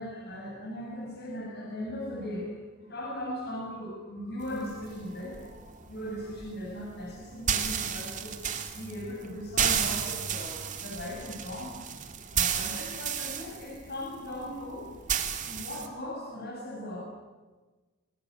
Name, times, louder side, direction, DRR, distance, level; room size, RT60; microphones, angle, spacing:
voice 1, 0.0-2.5 2.8-8.4 8.7-11.9 12.3-14.9 15.2-17.0, left 1 dB, 50° left, -1 dB, 7.4 m, -38 dB
sound 1, 4.4-15.9, right 8 dB, 35° right, 2.5 m, -33 dB
28.5 x 20.5 x 9.7 m, 1.3 s
head